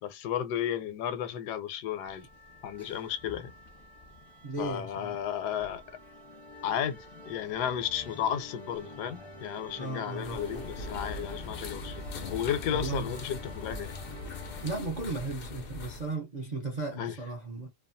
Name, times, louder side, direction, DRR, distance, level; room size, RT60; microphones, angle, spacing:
voice 1, 0.0-2.3 2.6-3.5 4.6-5.8 6.6-12.0 12.3-13.9 17.0-17.2, left 9 dB, 85° left, 1.2 m, -33 dB
sound 1, 2.0-14.8, left 2 dB, 25° left, 0.5 m, -47 dB
voice 2, 4.4-5.2 9.8-10.4 12.7-13.1 14.6-17.7, right 3 dB, 50° right, 0.5 m, -35 dB
sound 2, 10.2-16.1, left 3 dB, 70° left, 0.5 m, -41 dB
2.8 x 2.3 x 2.5 m
omnidirectional pair, 1.7 m